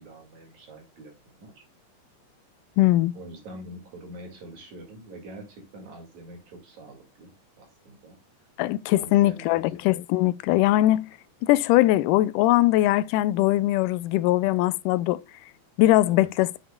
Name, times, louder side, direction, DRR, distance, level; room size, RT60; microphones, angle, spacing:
voice 1, 0.0-1.6 3.1-7.3 7.6-8.2 8.9-9.6 16.1-16.3, right 1 dB, 60° right, 3.7 m, -44 dB
voice 2, 2.8-3.1 8.6-11.1 11.4-15.2 15.8-16.5, left 16 dB, 85° left, 2.1 m, -21 dB
7.9 x 7.8 x 2.3 m
omnidirectional pair, 3.7 m